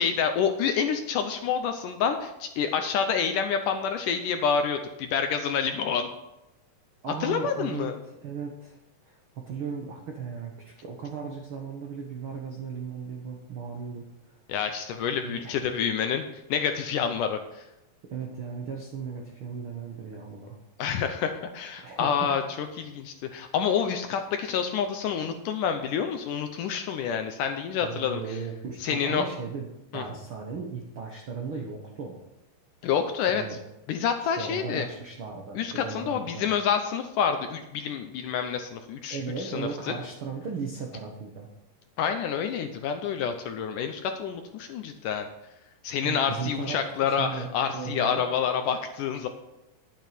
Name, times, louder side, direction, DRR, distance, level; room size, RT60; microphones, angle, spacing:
voice 1, 0.0-6.1 7.2-7.9 14.5-17.6 20.8-28.4 28.8-29.2 29.9-30.0 32.8-33.6 33.9-34.9 35.6-39.9 42.0-45.3 45.8-49.3, left 7 dB, 75° left, 6 dB, 2.0 m, -28 dB
voice 2, 7.0-8.8 9.1-14.0 15.2-15.7 18.1-20.6 21.8-22.3 27.8-29.7 29.9-32.2 33.3-33.6 34.2-36.5 39.1-41.5 46.0-46.8 47.0-47.5 47.7-48.2, right 5 dB, 75° right, 0 dB, 1.2 m, -36 dB
11.0 x 9.2 x 5.1 m, 0.91 s
omnidirectional pair, 4.3 m